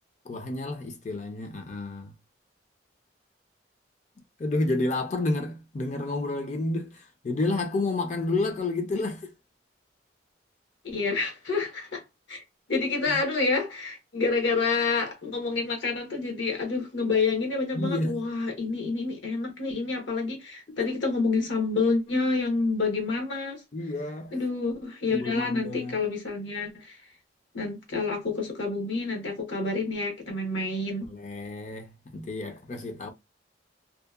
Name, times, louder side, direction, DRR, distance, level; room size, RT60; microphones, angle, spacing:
voice 1, 0.3-2.1 4.4-9.3 17.7-18.3 20.7-20.9 23.7-24.4 25.1-25.9 31.1-33.1, left 2 dB, 40° left, 0.4 m, -30 dB
voice 2, 10.8-12.0 12.3-12.4 12.7-23.6 24.3-27.0 27.5-31.1, left 3 dB, 75° left, 0.9 m, -28 dB
2.7 x 2.1 x 2.3 m
head